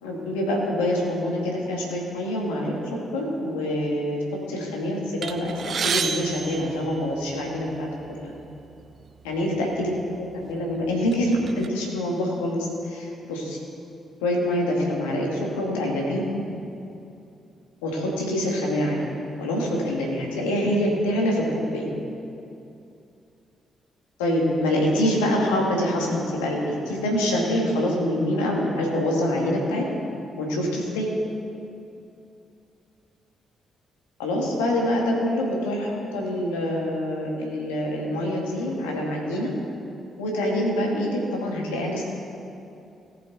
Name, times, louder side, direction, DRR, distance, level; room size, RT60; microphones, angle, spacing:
voice 1, 0.0-2.8 3.1-4.2 4.5-8.3 9.2-9.9 10.2-13.6 14.2-16.4 17.8-19.1 19.4-21.4 21.7-21.9 24.2-29.8 30.4-31.1 34.2-39.5 40.2-42.0, left 1 dB, 80° left, -2 dB, 2.0 m, -25 dB
sound 1, 5.2-7.6 8.4-8.5 8.8-9.0 9.9-10.0 10.5-11.7, right 6 dB, 50° right, 0.7 m, -30 dB
18.0 x 6.9 x 4.1 m, 2.7 s
hypercardioid pair, 40°, 0 cm